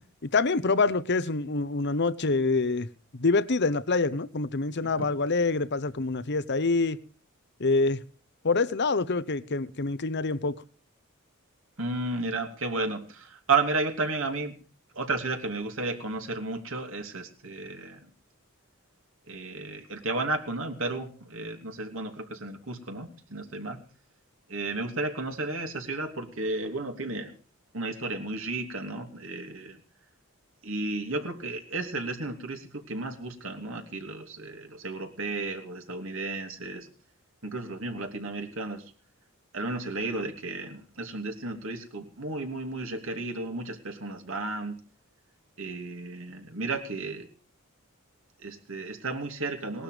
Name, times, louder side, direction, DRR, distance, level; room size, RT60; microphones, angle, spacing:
voice 1, 0.3-2.9 3.1-7.0 7.6-8.0 8.4-10.6, left 3 dB, 55° left, 0.9 m, -26 dB
voice 2, 11.8-14.5 14.9-18.1 19.3-23.8 24.5-27.3 27.7-29.8 30.6-36.9 37.4-38.8 39.5-44.8 45.6-47.3 48.4-49.8, right 3 dB, 65° right, 2.9 m, -33 dB
19.5 x 12.5 x 5.0 m
head